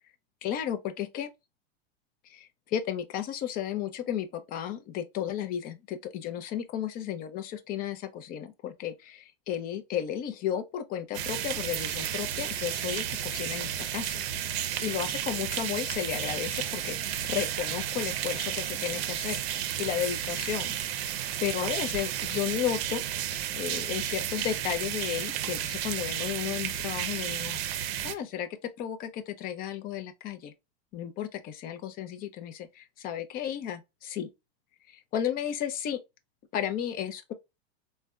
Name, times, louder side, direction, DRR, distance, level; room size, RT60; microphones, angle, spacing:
voice 1, 0.4-1.3 2.3-14.2 14.8-17.0 17.2-23.0 23.5-27.6 28.0-28.5 28.8-30.5 30.9-34.3 34.9-36.0 36.5-37.3, left 10 dB, 30° left, 0.4 m, -33 dB
sound 1, 11.1-28.1, right 10 dB, 70° right, 0.6 m, -32 dB
3.3 x 2.2 x 2.3 m
hypercardioid pair, 120°, 32 cm